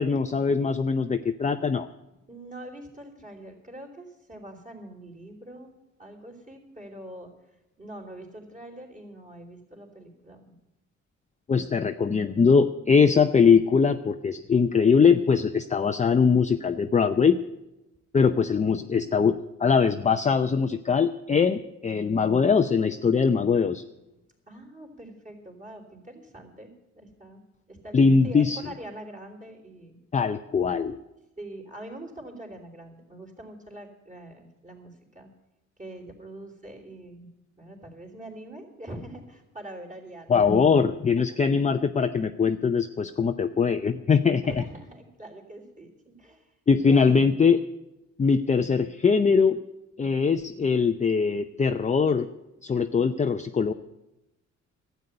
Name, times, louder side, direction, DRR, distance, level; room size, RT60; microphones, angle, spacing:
voice 1, 0.0-1.9 11.5-17.4 18.1-23.8 27.9-28.6 30.1-31.0 40.3-44.4 46.7-47.6 48.2-49.6 50.0-52.3 52.6-53.7, left 5 dB, 25° left, 7 dB, 0.6 m, -22 dB
voice 2, 2.3-5.7 6.0-7.3 7.8-10.6 24.5-27.4 27.7-30.0 31.4-35.3 35.8-37.3 37.6-40.7 41.2-41.4 44.4-46.5 46.8-47.2, right 1 dB, 25° right, 3 dB, 3.5 m, -43 dB
12.5 x 8.2 x 9.8 m, 0.93 s
cardioid pair, 90°, 30 cm